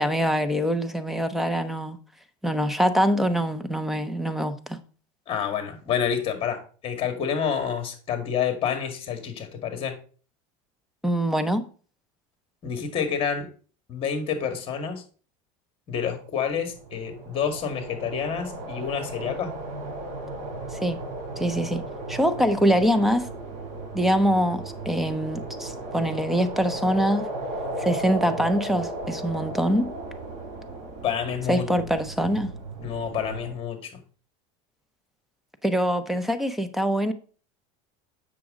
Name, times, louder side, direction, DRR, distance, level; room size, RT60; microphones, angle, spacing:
voice 1, 0.0-2.0 2.4-4.8 11.0-11.6 20.7-21.0 21.4-23.3 23.9-27.2 27.8-29.9 31.5-32.5 35.6-37.1, equal, ahead, 0.7 m, -24 dB
voice 2, 5.3-10.0 12.6-13.5 13.9-15.0 15.9-19.5 31.0-31.7 32.8-33.9, left 7 dB, 35° left, 1.9 m, -28 dB
sound 1, 16.6-33.5, right 2 dB, 50° right, 4.0 m, -35 dB
7.6 x 6.3 x 3.8 m
supercardioid pair, 135°, 16 cm